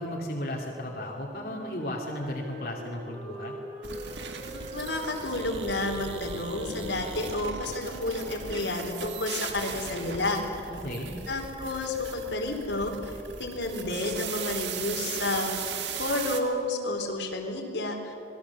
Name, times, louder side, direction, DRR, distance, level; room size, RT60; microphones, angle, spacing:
voice 1, 0.0-3.5 10.7-11.1, left 1 dB, 55° left, -1 dB, 2.6 m, -35 dB
Wind instrument woodwind instrument, 1.3-8.6, equal, 30° right, 7.4 m, -43 dB
sound 1, 3.8-16.4, right 6 dB, 85° right, 2.0 m, -38 dB
voice 2, 4.5-10.4 11.3-13.1 13.4-15.6 16.0-18.1, left 2 dB, 85° left, 1 dB, 3.8 m, -31 dB
26.5 x 20.5 x 7.2 m, 3.0 s
head